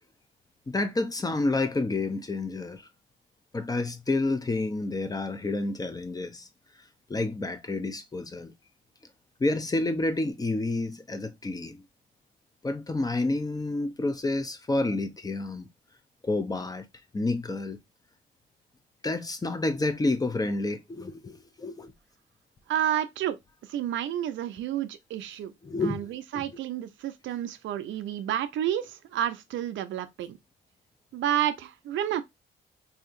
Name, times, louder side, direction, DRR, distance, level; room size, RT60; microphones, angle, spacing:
voice 1, 0.7-2.9 3.5-6.5 7.1-8.5 9.4-11.8 12.6-15.7 16.2-16.9 17.1-17.8 19.0-21.9 25.6-26.6, left 2 dB, 20° left, 0.5 m, -29 dB
voice 2, 22.7-23.4 23.7-25.5 25.8-30.4 31.1-32.2, right 11 dB, 75° right, 0.5 m, -30 dB
3.5 x 2.8 x 2.4 m
cardioid pair, 90°, 20 cm